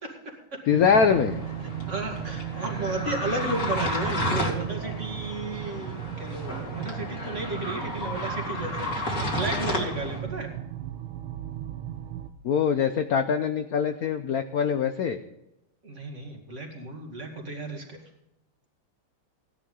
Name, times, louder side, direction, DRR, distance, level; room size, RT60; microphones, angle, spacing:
voice 1, 0.0-0.6 1.9-10.5 15.8-18.0, right 2 dB, 35° right, 1 dB, 2.4 m, -33 dB
voice 2, 0.7-1.4 12.4-15.2, left 7 dB, 75° left, 8 dB, 0.8 m, -23 dB
sound 1, 0.7-12.3, right 12 dB, 75° right, 1.7 m, -36 dB
sound 2, 0.9-10.2, left 1 dB, 40° left, 2.9 m, -32 dB
16.0 x 11.0 x 3.8 m, 0.87 s
omnidirectional pair, 2.4 m